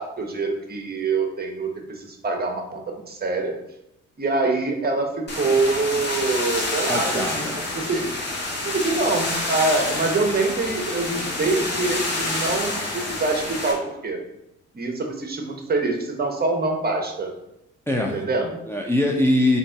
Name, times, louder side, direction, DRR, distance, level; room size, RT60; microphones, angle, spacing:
voice 1, 0.0-3.6 4.2-8.1 8.6-14.2 14.7-17.3 18.0-18.5, right 3 dB, 30° right, 3 dB, 0.9 m, -25 dB
sound 1, 5.3-13.7, left 2 dB, 35° left, 1.5 m, -28 dB
voice 2, 6.8-7.5 17.9-18.2 18.7-19.6, left 1 dB, 10° left, 0 dB, 0.5 m, -22 dB
3.9 x 2.8 x 4.5 m, 0.84 s
cardioid pair, 90°, 30 cm